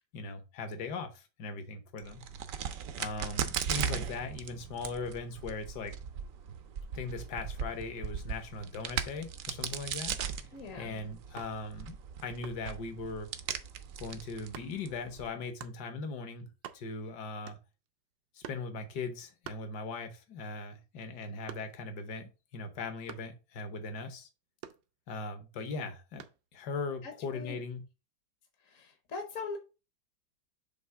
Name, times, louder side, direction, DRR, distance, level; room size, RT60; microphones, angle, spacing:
voice 1, 0.1-2.2 3.0-5.9 6.9-10.2 10.8-11.9 12.2-13.3 14.0-16.5 16.7-17.6 18.3-24.3 25.1-26.3 26.5-27.8, left 3 dB, 70° left, 1.6 m, -39 dB
Crack, 2.0-15.3, right 8 dB, 65° right, 0.8 m, -38 dB
sound 1, 10.2-10.5 11.4-11.7 12.4-12.7 13.5-13.7 14.5-14.8 15.6-15.8 16.3-16.4 16.5-17.1 17.5-17.9 18.4-18.7 19.4-20.2 20.6-22.0 23.1-23.4 24.6-25.3 26.2-26.5, right 11 dB, 80° right, 1.3 m, -48 dB
voice 2, 10.5-11.0 27.0-27.6 28.7-29.6, left 4 dB, 50° left, 1.1 m, -41 dB
7.0 x 2.9 x 4.7 m
omnidirectional pair, 2.0 m